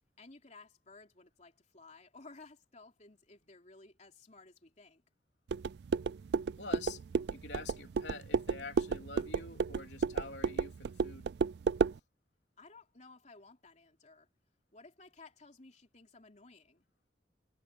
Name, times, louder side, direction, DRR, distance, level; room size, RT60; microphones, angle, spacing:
voice 1, 0.2-5.0 12.6-14.3 14.7-16.8, left 3 dB, 40° left, 3.4 m, -56 dB
sound 1, 5.5-12.0, right 5 dB, 65° right, 0.4 m, -33 dB
voice 2, 6.6-7.0 7.3-11.3, left 3 dB, 75° left, 3.7 m, -46 dB
head